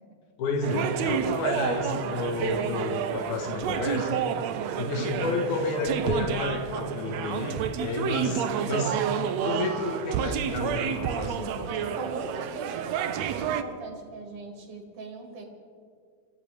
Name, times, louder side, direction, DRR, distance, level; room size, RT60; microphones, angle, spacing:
voice 1, 0.4-4.2 4.8-9.0 9.4-11.7, left 3 dB, 85° left, 2 dB, 2.8 m, -30 dB
sound 1, 0.6-13.6, right 9 dB, 75° right, 1.8 m, -30 dB
voice 2, 5.0-5.4 11.7-15.5, right 3 dB, 55° right, 1 dB, 2.9 m, -40 dB
26.0 x 14.5 x 3.4 m, 2.2 s
omnidirectional pair, 3.4 m